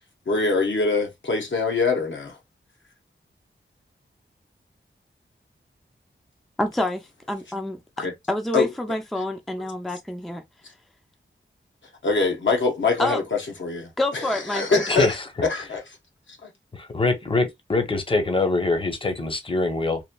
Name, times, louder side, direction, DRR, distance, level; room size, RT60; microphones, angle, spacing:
voice 1, 0.3-2.4 8.0-8.1 8.5-8.7 12.0-15.2 15.4-15.8 16.3-16.5, left 4 dB, 70° left, 0.9 m, -24 dB
voice 2, 6.6-10.4 13.0-13.2 14.0-14.8, left 1 dB, ahead, 0.4 m, -27 dB
voice 3, 16.7-20.0, left 3 dB, 25° left, 0.7 m, -23 dB
3.0 x 2.5 x 2.2 m
wide cardioid pair, 80°, 20 cm